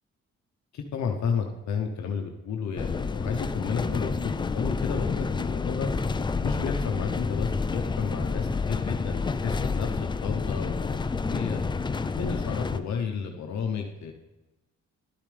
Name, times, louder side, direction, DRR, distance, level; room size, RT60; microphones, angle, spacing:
voice 1, 0.7-5.9 6.4-11.6 12.2-14.1, left 6 dB, 65° left, 3 dB, 0.9 m, -32 dB
sound 1, 2.8-12.8, left 4 dB, 15° left, 0.4 m, -29 dB
11.5 x 8.9 x 3.4 m, 1.1 s
cardioid pair, 90°, 30 cm